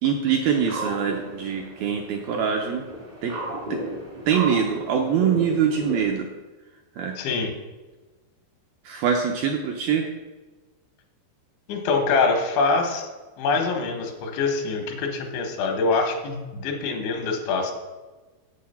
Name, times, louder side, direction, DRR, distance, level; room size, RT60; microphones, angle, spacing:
voice 1, 0.0-2.9 3.2-3.4 3.7-3.8 4.3-6.3 7.0-7.2 8.8-10.1, right 7 dB, 85° right, 2 dB, 2.1 m, -24 dB
sound 1, 0.5-6.1, right 2 dB, 45° right, 0.7 m, -35 dB
voice 2, 7.2-7.5 11.7-13.1 13.4-17.7, left 4 dB, 85° left, 3 dB, 3.8 m, -24 dB
8.5 x 8.5 x 5.7 m, 1.2 s
omnidirectional pair, 5.2 m